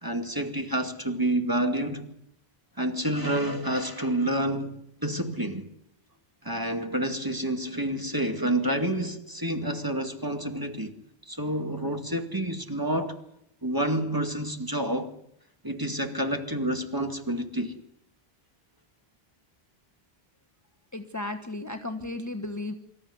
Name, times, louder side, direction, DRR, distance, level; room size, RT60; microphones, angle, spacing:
voice 1, 0.0-2.1 2.8-5.7 6.4-10.9 11.3-13.2 13.6-15.1 15.6-17.7, right 1 dB, 20° right, 2.2 m, -29 dB
voice 2, 20.9-22.7, left 2 dB, 15° left, 1.3 m, -34 dB
25.0 x 14.0 x 9.5 m
omnidirectional pair, 1.0 m